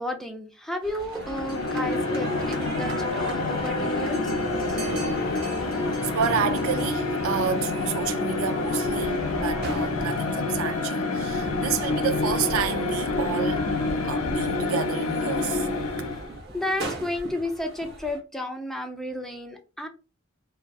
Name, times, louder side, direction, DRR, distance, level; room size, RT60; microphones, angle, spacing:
voice 1, 0.0-4.7 15.8-19.9, left 1 dB, ahead, 0.3 m, -33 dB
sound 1, 0.8-18.2, right 2 dB, 50° right, 0.8 m, -40 dB
sound 2, 1.1-16.4, left 3 dB, 80° left, 0.5 m, -27 dB
voice 2, 6.0-13.7 14.0-15.7, right 8 dB, 75° right, 0.3 m, -30 dB
2.7 x 2.2 x 2.2 m
head